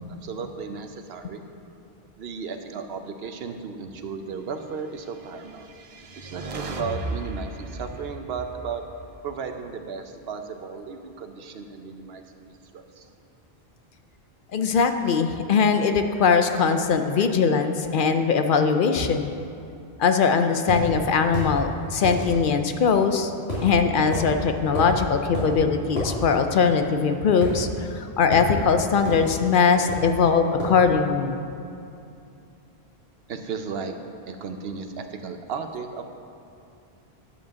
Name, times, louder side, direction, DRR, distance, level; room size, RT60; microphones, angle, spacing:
voice 1, 0.1-1.4 2.2-5.7 6.2-8.8 9.2-12.5 12.7-13.1 17.2-17.3 33.3-33.9 34.3-36.0, right 5 dB, 75° right, 7 dB, 0.9 m, -35 dB
sound 1, 5.4-9.7, right 2 dB, 40° right, 0.6 m, -36 dB
voice 2, 14.5-19.3 20.0-23.3 23.6-31.4, left 5 dB, 60° left, 7 dB, 0.7 m, -21 dB
sound 2, 20.7-20.8 21.3-21.5 22.0-22.2 23.5-23.7 24.1-24.3 24.7-25.0 25.3-25.5 26.0-26.1 27.4-28.0 28.3-28.5 29.0-29.3 29.9-30.1 30.6-30.8, equal, 90° left, 2.8 m, -29 dB
9.8 x 5.3 x 6.9 m, 2.6 s
omnidirectional pair, 1.1 m